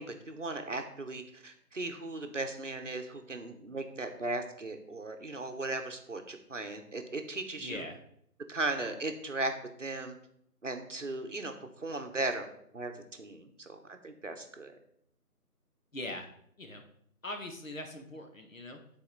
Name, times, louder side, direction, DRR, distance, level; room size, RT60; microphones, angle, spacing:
voice 1, 0.0-7.8 8.5-9.5 9.8-10.1 10.6-11.5 11.8-14.8, right 2 dB, 55° right, 6 dB, 0.9 m, -37 dB
voice 2, 7.6-8.0 15.9-16.3 16.6-16.8 17.2-18.8, left 1 dB, 55° left, 4 dB, 1.2 m, -41 dB
9.1 x 4.2 x 4.0 m, 0.71 s
figure-of-eight pair, 180°, 46 cm